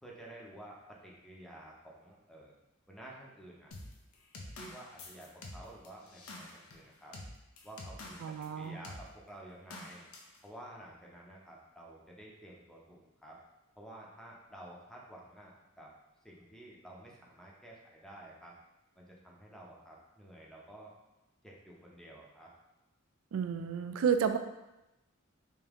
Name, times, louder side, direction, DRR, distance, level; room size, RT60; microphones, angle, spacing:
voice 1, 0.0-2.5 2.9-3.7 4.6-7.2 7.6-10.0 10.4-13.4 13.7-15.9 16.2-18.6 19.0-20.9 21.4-22.5, right 1 dB, 5° left, -3 dB, 0.6 m, -51 dB
sound 1, 3.7-8.5 8.8-9.1 9.7-10.4, left 2 dB, 85° left, 0.6 m, -48 dB
voice 2, 8.2-8.8 23.3-24.4, right 7 dB, 70° right, 7 dB, 0.3 m, -31 dB
3.5 x 2.7 x 3.4 m, 0.97 s
head